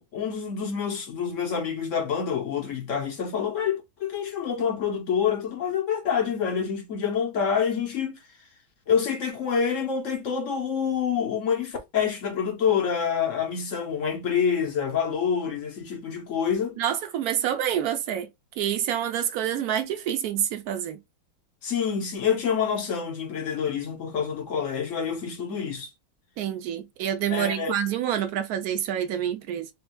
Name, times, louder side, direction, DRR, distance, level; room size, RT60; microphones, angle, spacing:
voice 1, 0.1-8.2 8.9-16.8 21.6-25.9 27.3-27.7, left 7 dB, 55° left, 0.8 m, -27 dB
voice 2, 16.8-18.3 18.6-21.0 26.4-29.7, right 10 dB, 85° right, 0.8 m, -27 dB
3.4 x 3.2 x 2.2 m
omnidirectional pair, 2.3 m